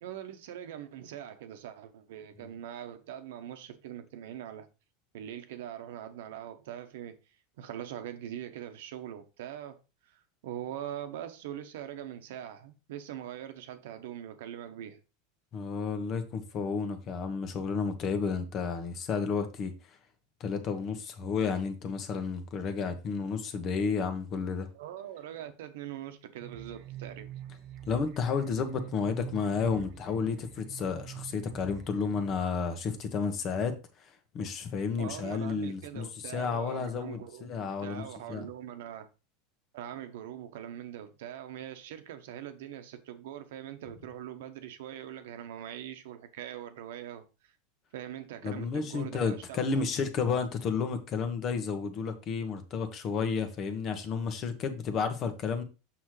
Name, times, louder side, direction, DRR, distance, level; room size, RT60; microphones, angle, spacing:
voice 1, 0.0-4.7 5.1-7.2 7.6-15.0 24.7-27.3 35.0-39.1 39.7-47.5 47.9-49.8, right 11 dB, 80° right, 1.1 m, -42 dB
voice 2, 15.5-19.7 20.4-24.7 27.9-33.7 34.0-34.1 34.3-36.1 36.3-38.0 38.3-38.5 48.4-55.6, left 5 dB, 40° left, 1.3 m, -31 dB
sound 1, 26.4-32.5, right 10 dB, 50° right, 0.6 m, -46 dB
6.0 x 6.0 x 3.2 m
supercardioid pair, 125°, 0 cm